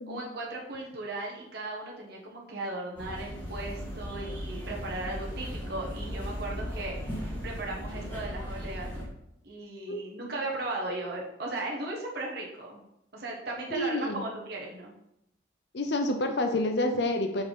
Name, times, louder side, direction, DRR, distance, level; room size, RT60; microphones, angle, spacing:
voice 1, 0.1-8.9 9.4-12.8 13.1-14.9, right 2 dB, 55° right, -3 dB, 1.4 m, -37 dB
sound 1, 3.0-9.0, equal, 10° left, 1.8 m, -37 dB
voice 2, 13.7-14.2 15.7-17.4, left 1 dB, 60° left, 5 dB, 0.6 m, -28 dB
5.7 x 4.5 x 5.4 m, 0.81 s
head